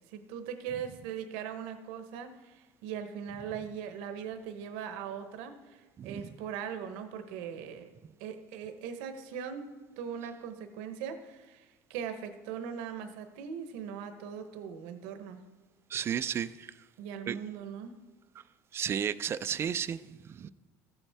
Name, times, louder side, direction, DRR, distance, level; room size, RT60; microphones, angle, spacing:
voice 1, 0.1-7.9 8.2-15.4 17.0-18.0, right 7 dB, 80° right, 0.9 m, -40 dB
voice 2, 6.0-6.4 15.9-16.7 17.3-17.4 18.7-20.5, right 8 dB, 35° right, 0.4 m, -33 dB
14.5 x 7.2 x 3.4 m
supercardioid pair, 110°, 7 cm